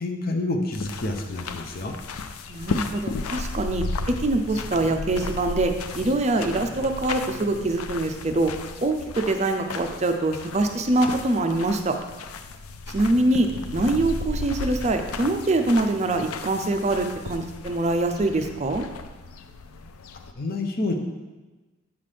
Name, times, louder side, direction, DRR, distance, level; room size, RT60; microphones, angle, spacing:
voice 1, 0.0-1.9 20.4-20.9, left 2 dB, 45° left, 3 dB, 0.6 m, -28 dB
sound 1, 0.7-20.3, left 3 dB, 90° left, 0.5 m, -35 dB
voice 2, 2.5-8.5 8.8-12.0 12.9-18.8, right 2 dB, 30° right, 6 dB, 0.4 m, -24 dB
7.4 x 5.6 x 3.3 m, 1.2 s
head